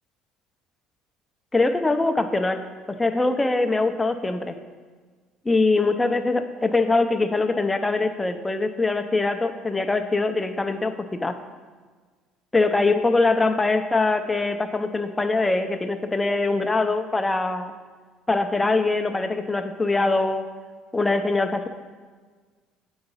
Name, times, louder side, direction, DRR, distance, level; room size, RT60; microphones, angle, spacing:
voice 1, 1.5-2.6 2.9-4.6 5.5-10.9 11.2-11.4 12.5-17.7 18.3-20.4 20.9-21.7, left 3 dB, 10° left, 7 dB, 0.5 m, -23 dB
7.9 x 3.9 x 5.4 m, 1.5 s
cardioid pair, 130°, 0 cm